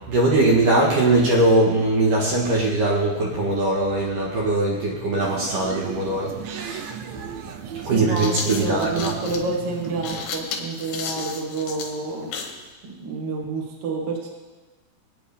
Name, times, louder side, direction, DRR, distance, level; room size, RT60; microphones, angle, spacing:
voice 1, 0.1-6.9 7.8-9.1, right 2 dB, 60° right, -4 dB, 2.8 m, -21 dB
sound 1, 5.2-10.3, right 8 dB, 80° right, 2.0 m, -35 dB
sound 2, 6.8-6.9 7.9-12.6, left 5 dB, 75° left, 3.3 m, -33 dB
voice 2, 7.8-12.3 13.0-14.3, right 3 dB, 45° right, -1 dB, 2.3 m, -28 dB
21.5 x 9.1 x 3.5 m, 1.2 s
omnidirectional pair, 4.8 m